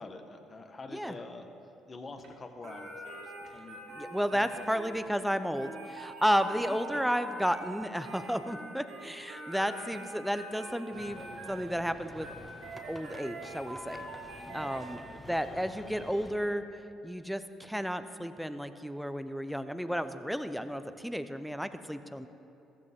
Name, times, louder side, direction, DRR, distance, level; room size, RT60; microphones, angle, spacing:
voice 1, 0.0-1.5 1.9-3.8 4.3-5.0 6.7-7.0 14.5-15.9, left 3 dB, 35° left, 5 dB, 1.5 m, -47 dB
sound 1, 2.2-2.5 3.4-3.7 4.9-5.2 6.5-6.7 8.1-8.5 9.8-10.2, right 3 dB, 70° right, 2.4 m, -59 dB
sound 2, 2.6-15.4, right 1 dB, 85° right, 3.7 m, -45 dB
voice 2, 3.9-12.3 12.9-14.0 14.5-15.0 15.3-16.6 17.0-22.3, equal, ahead, 10 dB, 0.8 m, -32 dB
sound 3, 10.9-16.3, left 1 dB, 15° left, 1.8 m, -49 dB
15.5 x 14.5 x 3.7 m, 2.8 s
hypercardioid pair, 60°, 0 cm